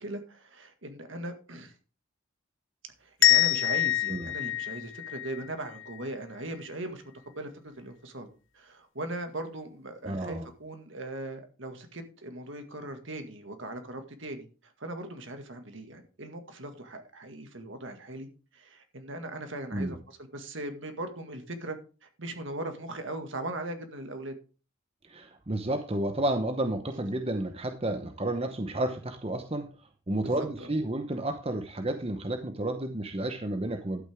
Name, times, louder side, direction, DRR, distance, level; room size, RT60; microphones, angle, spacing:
voice 1, 0.0-1.7 3.0-7.0 7.4-8.3 8.5-18.3 18.5-24.3 30.2-30.7, right 1 dB, 65° right, 6 dB, 1.9 m, -39 dB
sound 1, 3.2-6.0, left 14 dB, 65° left, 1.1 m, -26 dB
voice 2, 10.0-10.4 19.7-20.0 25.1-29.7 30.1-34.0, right 1 dB, 30° right, 6 dB, 0.9 m, -31 dB
12.0 x 8.9 x 3.5 m, 0.35 s
head